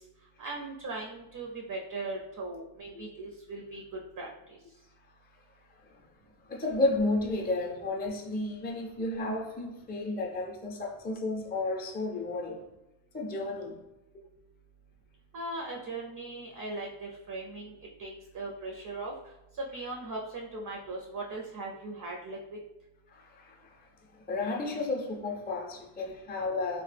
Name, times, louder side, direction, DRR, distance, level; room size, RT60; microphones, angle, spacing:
voice 1, 0.4-3.8 4.2-4.3 15.3-17.7 18.0-19.1 19.6-22.4, right 2 dB, 45° right, 0.5 m, -39 dB
voice 2, 6.5-12.6 13.1-13.8 23.1-23.8 24.1-26.8, left 2 dB, 20° left, 0.4 m, -32 dB
3.1 x 2.1 x 3.2 m
wide cardioid pair, 90°, 49 cm